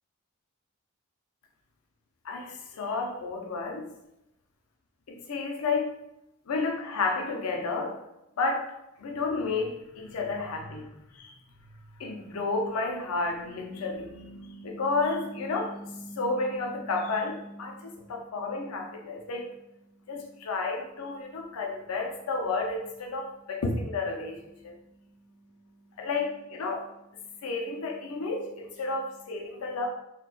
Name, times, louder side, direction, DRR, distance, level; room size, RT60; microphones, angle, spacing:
voice 1, 2.2-3.8 5.1-6.0 6.5-8.0 8.4-8.7 9.0-10.9 11.2-11.3 12.0-19.5 20.1-24.7 26.0-26.9 27.4-29.9, left 3 dB, 85° left, 1 dB, 0.5 m, -31 dB
3.8 x 2.2 x 2.3 m, 0.87 s
head